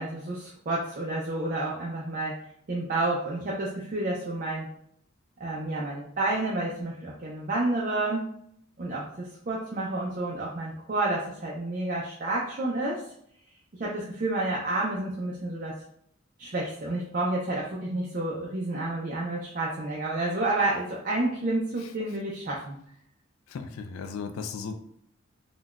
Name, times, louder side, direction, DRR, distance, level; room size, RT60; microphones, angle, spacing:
voice 1, 0.0-2.3 2.7-4.7 5.4-8.3 8.8-13.0 13.8-15.8 16.4-22.8, right 2 dB, 40° right, -4 dB, 0.4 m, -30 dB
voice 2, 23.5-24.7, left 5 dB, 85° left, 7 dB, 0.3 m, -36 dB
3.8 x 2.2 x 2.3 m, 0.69 s
head